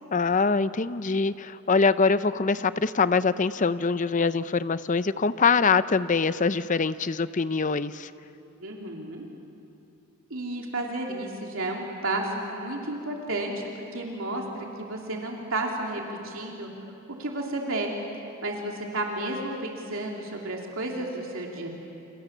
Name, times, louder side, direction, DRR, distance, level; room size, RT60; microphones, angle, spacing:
voice 1, 0.1-8.1, left 4 dB, 35° left, 14 dB, 0.6 m, -24 dB
voice 2, 8.6-9.3 10.3-16.7 17.2-17.9 18.4-21.7, right 2 dB, 70° right, 0 dB, 3.0 m, -32 dB
29.0 x 27.0 x 7.3 m, 2.8 s
head